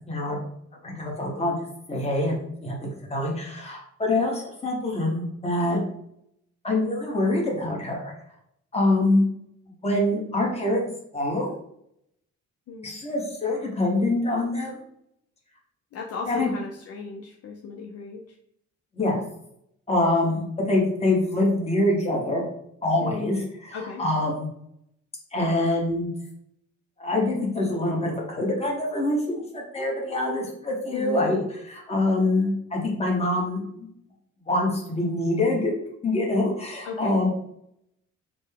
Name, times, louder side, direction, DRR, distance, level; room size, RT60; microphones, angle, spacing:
voice 1, 0.1-0.4 0.8-1.6 1.9-5.8 6.6-8.1 8.7-9.3 9.7-11.5 12.8-14.8 16.2-16.5 18.9-19.2 19.9-22.4 22.8-24.5 25.3-26.1 27.0-33.9 34.5-35.7 36.0-37.3, left 2 dB, 20° left, -2 dB, 1.1 m, -25 dB
voice 2, 15.9-18.4 23.0-23.3 23.7-24.0 30.9-31.4 36.8-37.1, left 5 dB, 55° left, 0 dB, 0.5 m, -35 dB
3.8 x 2.2 x 3.5 m, 0.73 s
cardioid pair, 125°, 29 cm